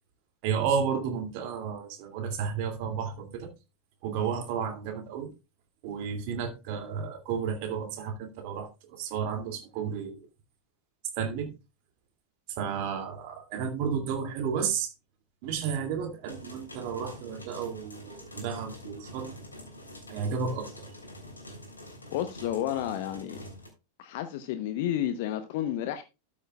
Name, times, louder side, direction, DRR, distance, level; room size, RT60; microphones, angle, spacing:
voice 1, 0.4-3.5 4.0-5.3 5.8-10.3 11.2-11.5 12.6-14.9 15.4-19.4 20.1-20.9, right 6 dB, 50° right, 2.5 m, -32 dB
sound 1, 16.3-23.7, equal, 80° left, 3.6 m, -46 dB
voice 2, 22.1-23.4 24.0-26.0, left 11 dB, 50° left, 0.9 m, -31 dB
13.0 x 8.5 x 2.3 m
figure-of-eight pair, 90°, 0 cm